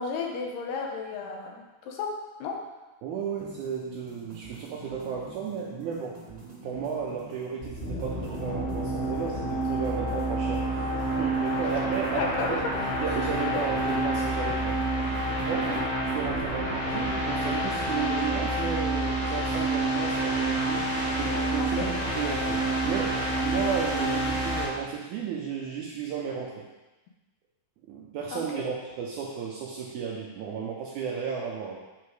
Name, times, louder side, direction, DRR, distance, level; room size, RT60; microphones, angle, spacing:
voice 1, 0.0-2.1 2.4-2.6 11.6-11.7 12.1-12.5 13.1-13.2 15.7-15.9 21.6-21.9 28.3-28.7, left 5 dB, 75° left, 1 dB, 2.5 m, -33 dB
voice 2, 3.0-6.2 6.5-12.6 13.0-20.9 21.1-26.7 27.9-31.8, right 6 dB, 80° right, -2 dB, 1.8 m, -34 dB
sound 1, 3.4-16.3, right 2 dB, 65° right, 0.4 m, -46 dB
sound 2, 7.6-24.7, right 1 dB, 25° left, 1.3 m, -28 dB
8.7 x 3.6 x 4.6 m, 1.1 s
omnidirectional pair, 4.2 m